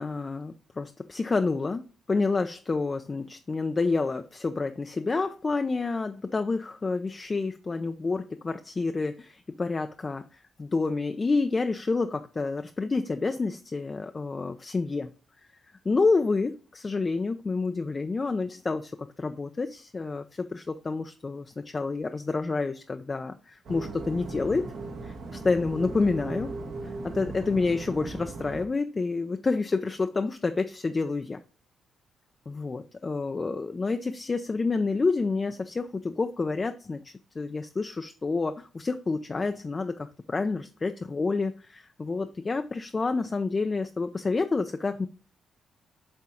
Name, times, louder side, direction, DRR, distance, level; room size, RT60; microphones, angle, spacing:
voice 1, 0.0-1.8 2.1-15.1 15.9-24.7 25.0-26.5 26.8-31.4 32.5-45.1, left 3 dB, 30° left, 0.5 m, -29 dB
sound 1, 23.6-28.7, right 3 dB, 70° right, 1.4 m, -37 dB
7.7 x 3.6 x 4.4 m
cardioid pair, 90°, 0 cm